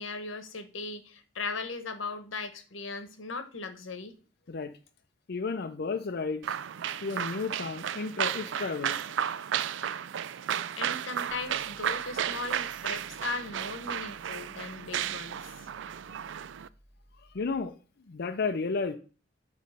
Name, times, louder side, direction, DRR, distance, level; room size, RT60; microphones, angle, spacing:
voice 1, 0.0-4.1 10.8-15.7, left 3 dB, 80° left, 10 dB, 1.2 m, -38 dB
voice 2, 5.3-6.6 7.0-9.4 17.2-17.7 18.1-18.9, left 4 dB, 55° left, 5 dB, 0.5 m, -33 dB
sound 1, 6.4-16.7, right 9 dB, 65° right, 0.4 m, -33 dB
sound 2, 11.3-17.7, equal, 35° right, 2.5 m, -60 dB
9.3 x 3.2 x 6.6 m, 0.37 s
head